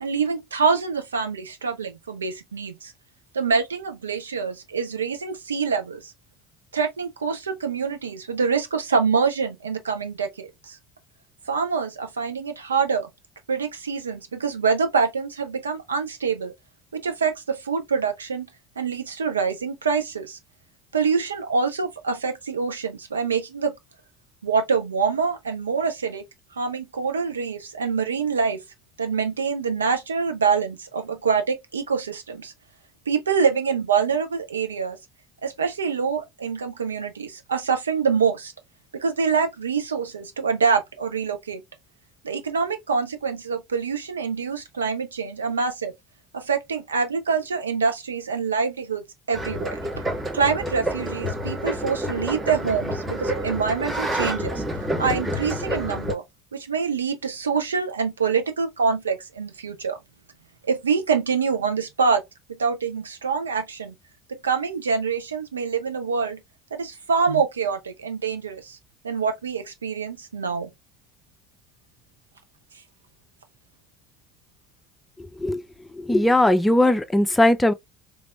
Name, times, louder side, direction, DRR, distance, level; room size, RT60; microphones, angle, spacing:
voice 1, 0.0-2.9 3.3-6.1 6.7-10.8 11.5-13.1 13.5-16.5 16.9-18.5 18.8-20.4 20.9-23.7 24.4-26.2 26.5-28.6 29.0-32.5 33.1-35.0 35.4-38.5 38.9-41.6 42.2-45.9 46.3-50.0 50.3-54.6 55.0-56.2 56.5-60.0 60.7-62.2 62.5-63.9 64.3-66.4 66.7-68.8 69.0-70.7, right 5 dB, 90° right, 0.6 m, -25 dB
sound 1, 49.3-56.1, equal, 35° right, 1.9 m, -28 dB
voice 2, 75.2-75.6 75.9-77.7, left 1 dB, 10° left, 0.6 m, -19 dB
3.4 x 3.3 x 2.4 m
hypercardioid pair, 60°, 0 cm